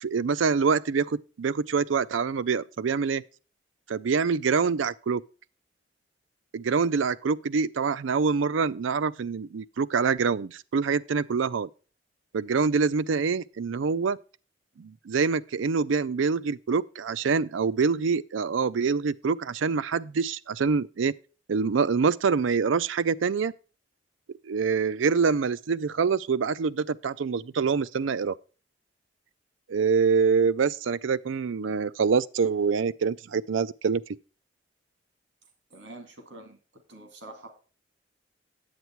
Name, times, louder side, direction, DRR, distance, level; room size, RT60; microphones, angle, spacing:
voice 1, 0.0-3.2 3.9-5.2 6.5-11.7 12.3-14.2 14.8-21.1 21.5-23.5 24.4-28.3 29.7-34.0, right 5 dB, 90° right, 0.5 m, -25 dB
voice 2, 35.7-36.6 36.9-37.5, right 2 dB, 70° right, 2.3 m, -45 dB
9.6 x 8.1 x 4.5 m
head